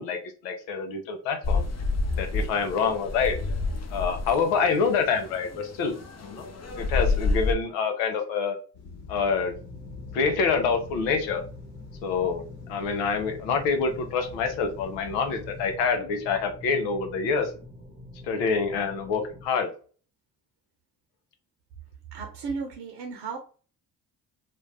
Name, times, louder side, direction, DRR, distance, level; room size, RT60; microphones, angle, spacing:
voice 1, 0.0-1.6 2.1-3.4 3.9-6.0 6.2-6.5 6.8-8.6 9.1-9.5 10.1-11.4 12.0-12.4 12.7-17.5 18.2-19.7, left 5 dB, 85° left, 6 dB, 0.7 m, -26 dB
sound 1, 1.4-7.5, left 3 dB, 35° left, 0.7 m, -29 dB
sound 2, 8.7-15.8, left 4 dB, 60° left, 1.0 m, -45 dB
sound 3, 9.5-19.5, left 1 dB, 5° right, 1.0 m, -46 dB
voice 2, 22.1-23.4, right 5 dB, 75° right, 3 dB, 0.8 m, -34 dB
2.4 x 2.2 x 3.2 m, 0.39 s
hypercardioid pair, 50°, 44 cm